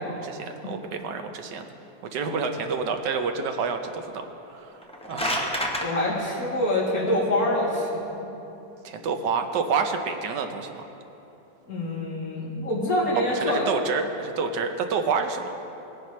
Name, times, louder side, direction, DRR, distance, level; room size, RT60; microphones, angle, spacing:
voice 1, 0.2-1.6 2.1-5.5 8.8-10.8 13.4-15.6, right 5 dB, 75° right, 5 dB, 1.4 m, -28 dB
sound 1, 4.7-5.9, equal, 10° left, 0.4 m, -28 dB
voice 2, 5.8-8.3 11.7-13.6, left 1 dB, 55° left, -7 dB, 3.1 m, -26 dB
18.5 x 9.9 x 3.1 m, 3.0 s
omnidirectional pair, 1.9 m